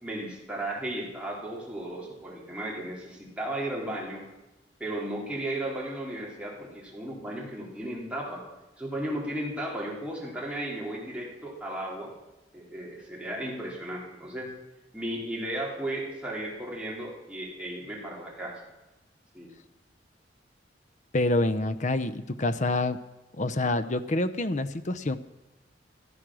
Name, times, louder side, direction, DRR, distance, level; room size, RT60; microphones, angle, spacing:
voice 1, 0.0-4.2 4.8-8.4 8.8-12.1 12.5-14.5 14.9-18.6 19.3-19.5, right 1 dB, 5° right, -4 dB, 3.6 m, -35 dB
voice 2, 21.1-23.0 23.3-25.2, left 2 dB, 40° left, 12 dB, 0.7 m, -27 dB
15.0 x 13.0 x 6.3 m, 1.0 s
head